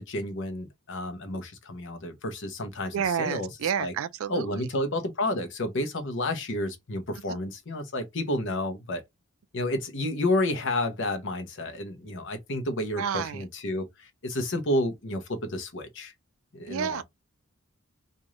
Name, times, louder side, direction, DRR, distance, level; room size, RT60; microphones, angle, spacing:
voice 1, 0.0-3.5 3.8-3.9 4.3-9.0 9.5-16.1 16.5-17.0, left 1 dB, 55° left, 0.8 m, -30 dB
voice 2, 2.9-4.6 7.3-7.4 13.0-13.4 16.7-17.0, right 8 dB, 65° right, 0.3 m, -30 dB
3.1 x 2.6 x 3.6 m
head